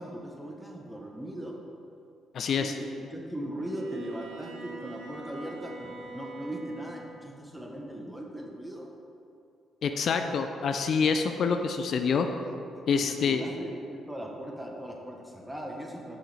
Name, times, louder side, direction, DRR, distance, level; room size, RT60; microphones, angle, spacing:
voice 1, 0.0-1.6 2.6-9.0 12.7-16.2, right 1 dB, 5° right, 0 dB, 0.8 m, -39 dB
voice 2, 2.3-2.7 9.8-12.3 12.9-13.4, left 6 dB, 60° left, 6 dB, 0.3 m, -26 dB
Bowed string instrument, 3.6-7.3, right 3 dB, 85° right, 0.7 m, -44 dB
6.0 x 5.0 x 3.3 m, 2.6 s
cardioid pair, 90°, 0 cm